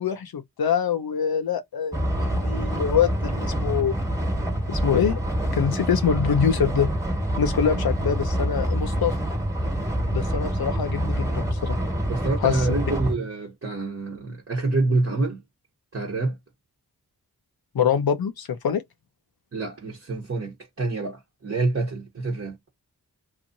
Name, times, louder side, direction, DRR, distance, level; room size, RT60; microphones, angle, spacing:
voice 1, 0.0-4.0 4.7-5.2 5.5-6.9 7.4-9.2 10.1-11.8 12.4-12.8 17.7-18.8, left 7 dB, 70° left, 0.6 m, -24 dB
sound 1, 1.9-13.1, equal, 10° right, 1.4 m, -26 dB
voice 2, 12.1-15.4 15.9-16.4 19.5-22.6, right 3 dB, 35° right, 1.0 m, -27 dB
2.9 x 2.5 x 2.6 m
cardioid pair, 40°, 38 cm